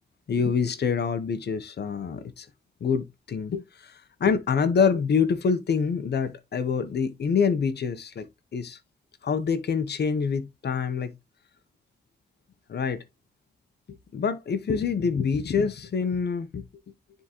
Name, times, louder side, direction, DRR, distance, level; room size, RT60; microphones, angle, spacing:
voice 1, 0.3-2.5 2.8-8.3 8.5-8.8 9.2-11.1 12.7-13.0 14.1-16.6, left 6 dB, 85° left, 0.8 m, -26 dB
9.8 x 3.7 x 2.9 m
wide cardioid pair, 85°, 17 cm